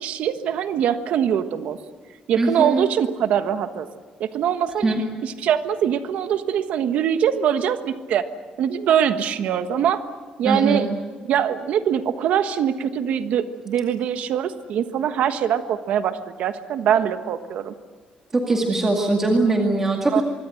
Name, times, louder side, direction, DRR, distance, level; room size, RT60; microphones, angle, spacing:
voice 1, 0.0-1.8 2.3-3.9 4.2-5.0 5.2-8.3 8.6-10.1 10.4-10.9 11.3-17.7 20.1-20.2, right 9 dB, 60° right, 9 dB, 1.4 m, -23 dB
voice 2, 2.4-2.9 4.8-5.0 10.4-10.9 18.3-20.2, right 2 dB, 15° right, 1 dB, 2.2 m, -21 dB
25.0 x 23.5 x 7.9 m, 1.5 s
cardioid pair, 180°, 3 cm